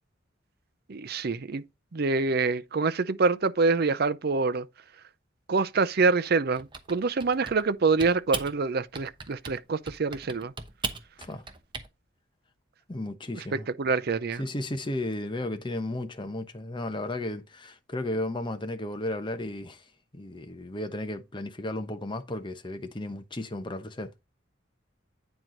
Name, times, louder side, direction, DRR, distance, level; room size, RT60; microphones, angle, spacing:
voice 1, 0.9-1.6 1.9-4.7 5.5-10.5 13.5-14.4, right 4 dB, 50° right, 0.6 m, -26 dB
Typing, 6.5-7.7 8.0-8.5 8.9-9.6 9.9-11.9, right 4 dB, 25° right, 0.9 m, -37 dB
voice 2, 12.9-13.7 14.4-24.1, left 1 dB, 25° left, 0.9 m, -34 dB
9.3 x 4.6 x 3.9 m
head